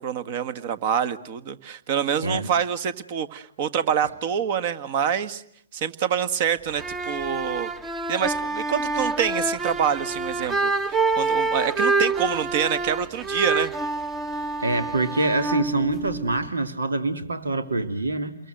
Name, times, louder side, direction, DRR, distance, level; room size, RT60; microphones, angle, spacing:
voice 1, 0.0-5.4 5.7-7.7 8.1-13.7, right 8 dB, 40° right, 14 dB, 1.6 m, -26 dB
sound 1, 6.7-16.5, right 3 dB, 10° right, 1.0 m, -27 dB
voice 2, 14.6-18.4, right 2 dB, 85° right, 9 dB, 2.5 m, -25 dB
29.5 x 22.5 x 7.8 m, 0.68 s
hypercardioid pair, 135°, 0 cm